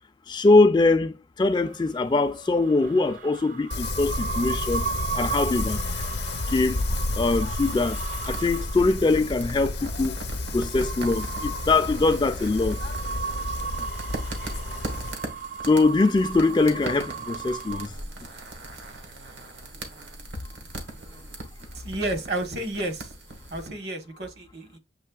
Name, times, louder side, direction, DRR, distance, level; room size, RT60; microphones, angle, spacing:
voice 1, 0.3-4.9 5.2-5.8 6.5-6.8 7.1-10.1 10.5-12.8 15.7-17.9, left 3 dB, 25° left, 0.3 m, -22 dB
sound 1, 1.5-17.9, right 6 dB, 45° right, 0.4 m, -36 dB
Wind, 3.7-15.1, left 2 dB, 70° left, 0.6 m, -31 dB
sound 2, 6.9-23.7, right 2 dB, 85° right, 1.4 m, -40 dB
voice 2, 21.7-23.1 23.5-24.8, right 1 dB, 65° right, 1.1 m, -31 dB
7.4 x 3.1 x 2.3 m
head